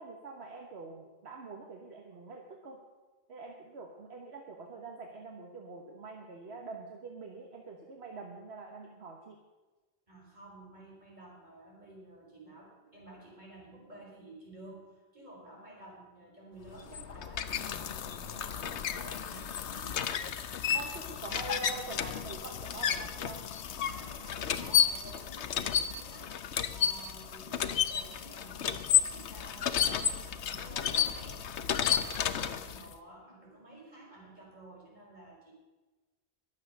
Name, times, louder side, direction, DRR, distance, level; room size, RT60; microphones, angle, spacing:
voice 1, 0.0-2.8 3.3-9.4 20.7-23.4, right 4 dB, 70° right, 2 dB, 1.6 m, -45 dB
voice 2, 10.1-20.0 20.3-21.1 23.8-26.3 26.7-35.5, right 1 dB, 40° right, -3 dB, 5.1 m, -52 dB
sound 1, 16.7-32.9, left 9 dB, 85° left, 1.1 m, -32 dB
22.0 x 7.4 x 6.6 m, 1.2 s
omnidirectional pair, 1.1 m